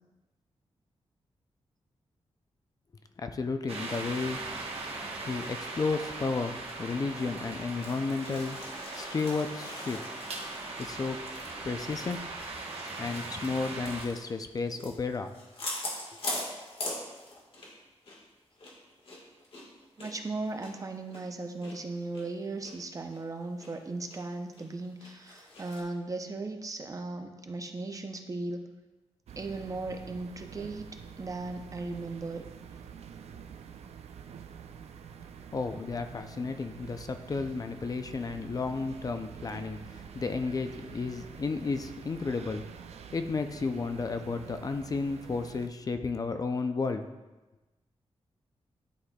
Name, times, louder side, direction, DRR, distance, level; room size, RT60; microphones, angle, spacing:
voice 1, 3.2-4.4 5.2-8.6 9.0-10.0 10.8-11.2 11.6-12.2 13.0-15.3 35.5-42.6 43.1-47.1, left 4 dB, 35° left, 8 dB, 0.4 m, -32 dB
sound 1, 3.7-14.0, right 3 dB, 70° right, 1.1 m, -39 dB
sound 2, 7.5-17.8 18.0-18.2 18.6-21.7 22.1-22.2 22.6-22.7 23.1-23.7 24.1-24.2 24.5-25.8, left 2 dB, 60° left, 1.5 m, -42 dB
voice 2, 20.0-28.7 29.4-30.9 31.2-32.4, right 3 dB, 30° right, 5 dB, 0.5 m, -37 dB
sound 3, 29.3-45.7, right 7 dB, 85° right, 0.4 m, -47 dB
11.5 x 4.0 x 2.3 m, 1.1 s
wide cardioid pair, 125°, 11 cm